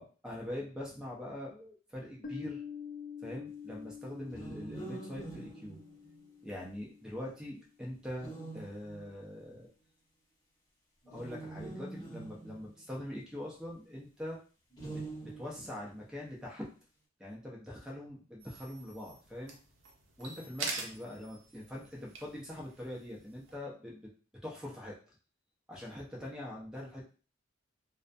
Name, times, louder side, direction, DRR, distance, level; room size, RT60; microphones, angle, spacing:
voice 1, 0.0-2.6 3.2-5.8 6.4-9.7 11.1-14.4 14.8-16.6 17.2-19.6 20.2-24.1 24.4-25.0 25.7-27.1, left 1 dB, 5° right, -3 dB, 0.6 m, -43 dB
Piano, 2.2-7.6, left 7 dB, 40° left, 0.5 m, -47 dB
sound 1, 4.3-6.5 8.1-9.3 11.0-13.3 14.7-15.8, right 3 dB, 20° left, 0.9 m, -45 dB
sound 2, 18.4-23.5, right 3 dB, 80° right, 0.5 m, -45 dB
2.4 x 2.1 x 2.5 m, 0.37 s
head